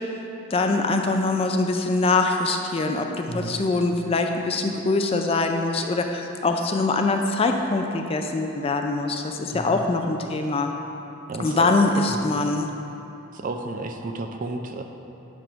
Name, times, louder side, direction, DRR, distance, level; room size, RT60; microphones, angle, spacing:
voice 1, 0.5-10.7 11.4-12.7, left 3 dB, 30° left, 4 dB, 0.3 m, -23 dB
voice 2, 9.5-9.8 11.3-11.7 12.1-12.3 13.3-14.8, right 2 dB, 40° right, 5 dB, 0.4 m, -32 dB
8.6 x 3.5 x 5.1 m, 3.0 s
head